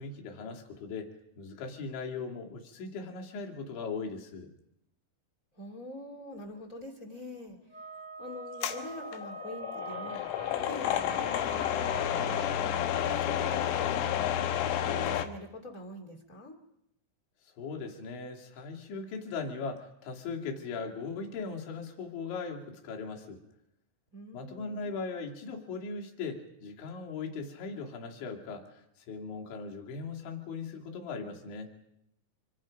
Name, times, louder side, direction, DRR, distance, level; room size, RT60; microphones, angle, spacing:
voice 1, 0.0-4.5 17.4-23.4 24.3-31.7, left 4 dB, 65° left, 1 dB, 4.7 m, -39 dB
voice 2, 5.5-7.6 8.2-10.2 10.5-12.5 13.0-16.6 24.1-24.9, left 1 dB, 35° left, 5 dB, 1.3 m, -44 dB
Wind instrument woodwind instrument, 7.7-12.5, right 2 dB, 25° right, 0.8 m, -44 dB
sound 1, 8.6-15.3, left 10 dB, 85° left, 3.9 m, -31 dB
28.0 x 25.5 x 5.2 m, 0.79 s
omnidirectional pair, 5.9 m